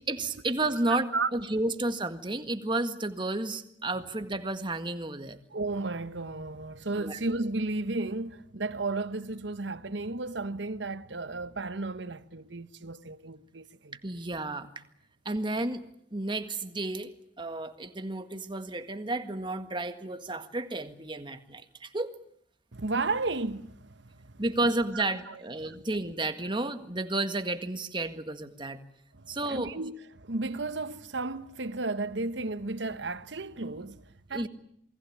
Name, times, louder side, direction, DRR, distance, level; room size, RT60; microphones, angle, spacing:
voice 1, 0.1-5.4 7.0-7.2 14.0-14.7 15.3-15.8 16.1-17.1 17.4-22.1 24.4-28.8 29.3-29.7 34.3-34.5, right 2 dB, 25° right, 1.8 m, -32 dB
voice 2, 0.9-1.3 5.5-14.0 22.7-24.3 24.9-25.8 29.1-34.5, right 3 dB, 75° right, 1.2 m, -34 dB
28.0 x 21.0 x 8.6 m
head